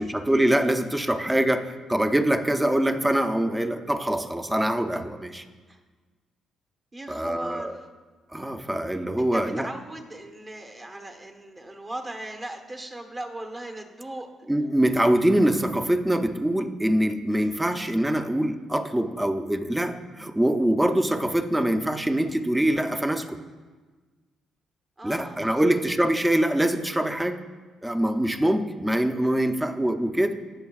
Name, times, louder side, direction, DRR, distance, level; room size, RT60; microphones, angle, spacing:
voice 1, 0.0-5.5 7.1-7.8 8.3-9.7 14.5-23.4 25.0-27.4 27.8-30.4, right 1 dB, 10° right, 8 dB, 0.6 m, -24 dB
voice 2, 6.9-7.8 9.2-14.3 17.3-17.8 25.0-25.7 29.2-29.8, right 1 dB, 25° right, 5 dB, 1.1 m, -39 dB
15.5 x 6.3 x 2.4 m, 1.4 s
cardioid pair, 90°, 0 cm